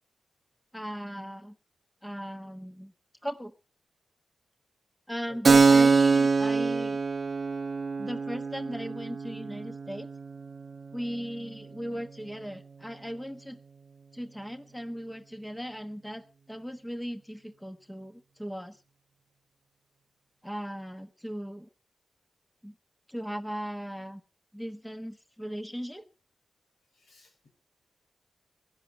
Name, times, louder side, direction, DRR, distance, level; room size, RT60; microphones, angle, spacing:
voice 1, 0.7-1.5 2.0-2.9 3.2-3.5 5.1-7.0 8.0-10.1 10.9-13.6 14.1-18.8 20.4-21.7 22.6-22.7 23.1-24.2 24.5-26.1, equal, 5° left, 8 dB, 1.1 m, -38 dB
voice 2, 5.3-5.7 26.9-27.5, left 4 dB, 80° left, 4 dB, 5.0 m, -54 dB
Keyboard (musical), 5.4-12.8, right 4 dB, 45° right, 0.9 m, -25 dB
16.5 x 10.5 x 5.5 m, 0.35 s
wide cardioid pair, 110°, 0 cm